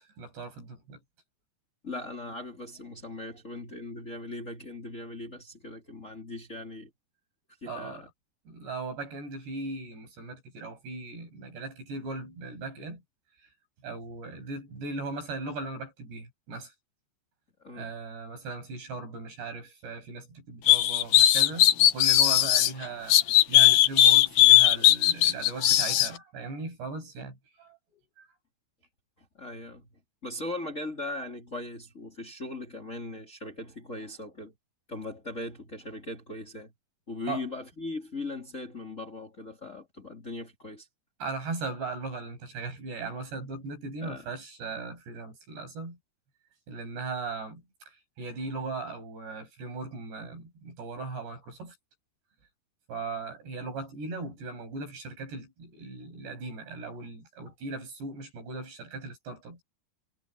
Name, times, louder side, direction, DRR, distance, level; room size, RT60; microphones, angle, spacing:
voice 1, 0.2-1.0 7.7-8.1 8.5-13.0 13.8-16.7 17.7-27.8 28.2-28.3 37.3-37.4 41.2-46.0 46.7-51.8 52.9-59.6, right 3 dB, 75° right, 9.5 m, -38 dB
voice 2, 1.8-6.9 7.6-8.1 17.6-17.9 29.3-29.9 30.2-34.5 34.9-36.7 37.1-40.9 44.0-44.3, left 2 dB, 20° left, 2.9 m, -39 dB
sound 1, 20.7-22.7 23.1-26.1, left 13 dB, 90° left, 1.6 m, -18 dB
omnidirectional pair, 4.9 m